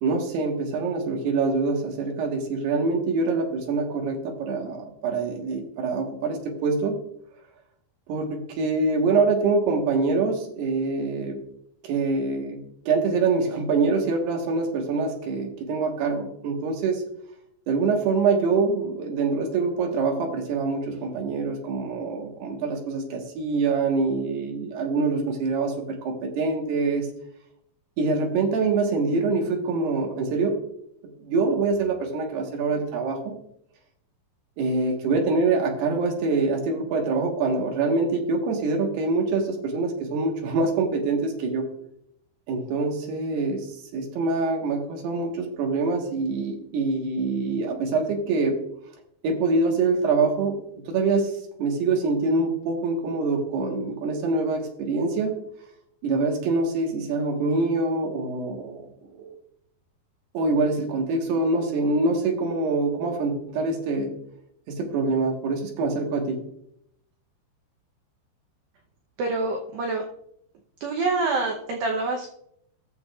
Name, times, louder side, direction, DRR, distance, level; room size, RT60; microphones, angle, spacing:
voice 1, 0.0-7.0 8.1-11.4 11.8-12.6 12.9-17.0 17.7-27.1 28.0-30.6 31.2-33.3 34.6-41.7 42.5-43.7 43.9-48.6 49.2-50.6 50.9-51.3 51.6-55.4 56.0-58.9 59.1-59.3 60.3-64.1 64.7-66.4, right 3 dB, 65° right, 1 dB, 3.2 m, -25 dB
voice 2, 69.2-70.0 70.8-72.3, right 3 dB, 85° right, 1 dB, 2.0 m, -26 dB
17.5 x 7.0 x 2.4 m, 0.73 s
omnidirectional pair, 5.4 m